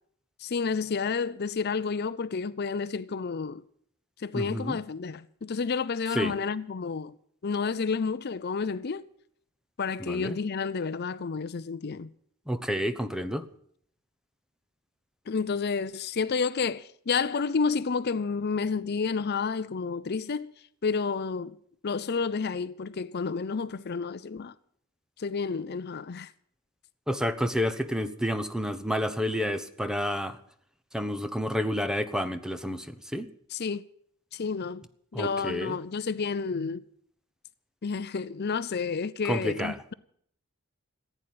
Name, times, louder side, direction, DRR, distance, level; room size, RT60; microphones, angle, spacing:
voice 1, 0.4-3.6 4.2-7.1 7.4-9.0 9.8-12.1 15.3-20.5 20.8-21.6 21.8-24.5 25.2-26.3 33.5-33.8 34.3-34.8 35.1-36.9 37.8-39.9, left 5 dB, 50° left, 0.5 m, -30 dB
voice 2, 4.3-4.8 6.1-6.3 10.0-10.4 12.5-13.5 27.1-30.4 30.9-33.3 35.1-35.8 39.2-39.8, equal, 5° right, 0.9 m, -30 dB
15.5 x 9.1 x 9.4 m
head